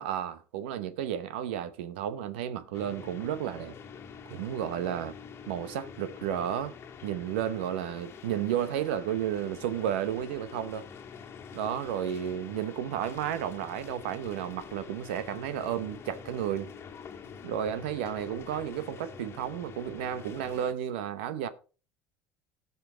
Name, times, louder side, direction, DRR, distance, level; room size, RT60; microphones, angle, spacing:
voice 1, 0.0-3.7 4.3-5.1 5.5-6.7 7.0-10.8 11.5-16.7 17.4-21.5, right 10 dB, 85° right, 0.9 m, -32 dB
sound 1, 2.7-20.7, left 6 dB, 45° left, 1.5 m, -46 dB
17.0 x 5.6 x 3.9 m
supercardioid pair, 90°, 6 cm